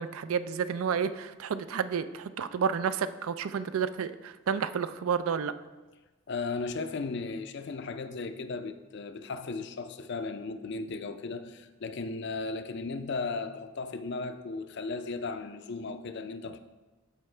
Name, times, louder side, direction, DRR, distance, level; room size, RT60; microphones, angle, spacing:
voice 1, 0.0-5.5, right 6 dB, 70° right, 0.4 m, -30 dB
voice 2, 6.3-16.6, left 3 dB, 50° left, 0.4 m, -36 dB
14.0 x 4.7 x 3.3 m
head